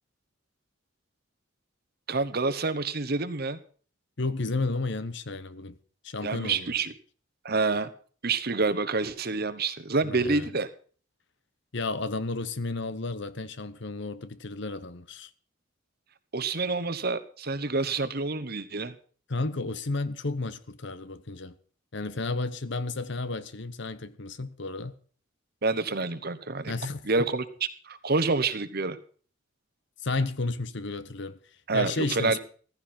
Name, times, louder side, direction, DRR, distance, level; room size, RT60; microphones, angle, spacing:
voice 1, 2.1-3.6 6.2-6.9 7.4-7.9 8.2-10.7 16.3-18.9 25.6-26.7 27.1-27.4 27.9-29.0 31.7-32.4, right 3 dB, 50° right, 1.1 m, -27 dB
voice 2, 4.2-5.8 6.0-6.8 10.0-10.5 11.7-15.3 19.3-21.5 21.9-24.9 26.7-27.0 30.0-31.4 31.7-32.4, left 3 dB, 60° left, 1.0 m, -32 dB
15.0 x 14.5 x 4.4 m
head